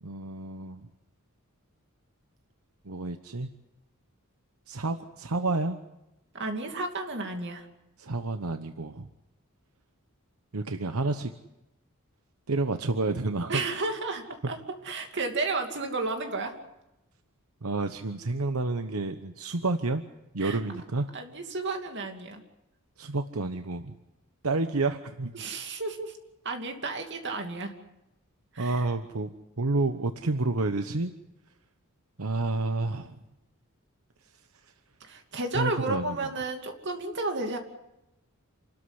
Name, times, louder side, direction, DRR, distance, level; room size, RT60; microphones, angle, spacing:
voice 1, 0.0-0.9 2.8-3.5 4.7-5.8 8.0-9.1 10.5-11.3 12.5-13.6 17.6-20.0 20.3-21.1 23.0-24.0 24.4-25.3 28.6-29.3 29.6-31.1 32.2-33.2 34.2-34.7 35.5-36.2, right 3 dB, 80° right, 8 dB, 1.0 m, -30 dB
voice 2, 6.3-7.7 13.5-14.6 14.8-16.6 20.4-20.6 21.1-22.4 25.3-26.2 26.4-27.8 28.5-28.9 35.0-37.6, right 3 dB, 55° right, 4 dB, 2.7 m, -32 dB
28.0 x 13.5 x 9.9 m, 0.93 s
head